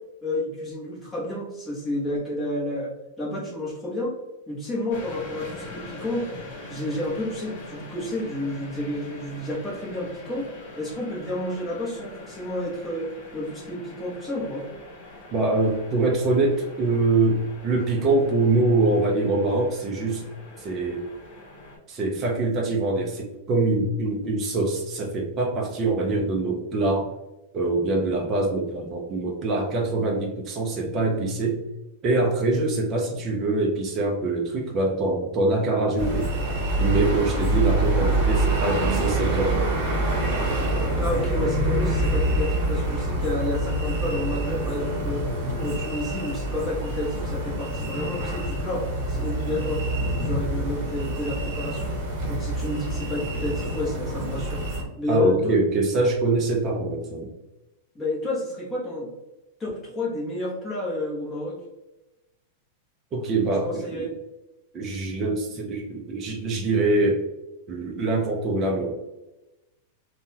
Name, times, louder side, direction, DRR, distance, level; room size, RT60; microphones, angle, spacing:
voice 1, 0.2-2.9 3.2-4.1 4.5-6.3 6.7-10.5 10.8-14.7 41.0-45.3 45.6-49.8 50.2-52.0 52.3-54.6 55.0-55.6 57.9-59.1 59.6-61.6 63.6-64.1, left 1 dB, 10° left, -5 dB, 0.8 m, -30 dB
sound 1, 4.9-21.8, left 2 dB, 35° left, 1.1 m, -43 dB
voice 2, 15.3-20.2 20.6-21.1 21.9-27.1 27.5-31.6 32.0-36.4 36.8-39.6 55.1-57.3 63.1-64.1 64.7-67.2 67.7-68.9, right 2 dB, 20° right, -1 dB, 0.4 m, -24 dB
sound 2, 36.0-54.8, right 1 dB, 45° right, 0.8 m, -26 dB
3.6 x 2.0 x 2.7 m, 0.98 s
supercardioid pair, 180°, 0 cm